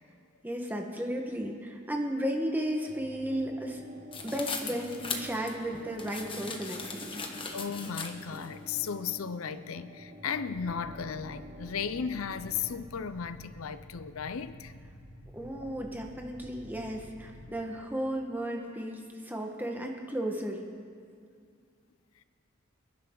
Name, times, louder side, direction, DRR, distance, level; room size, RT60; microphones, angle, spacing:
voice 1, 0.4-3.8 4.2-7.2 15.3-20.6, equal, 10° right, 1.4 m, -34 dB
sound 1, 2.9-12.7, equal, 40° right, 2.0 m, -49 dB
sound 2, 4.1-8.5, left 4 dB, 25° left, 1.3 m, -38 dB
voice 2, 7.5-14.7, left 6 dB, 85° left, 0.6 m, -35 dB
sound 3, 10.5-17.5, equal, 65° left, 2.6 m, -50 dB
27.0 x 11.0 x 3.9 m
head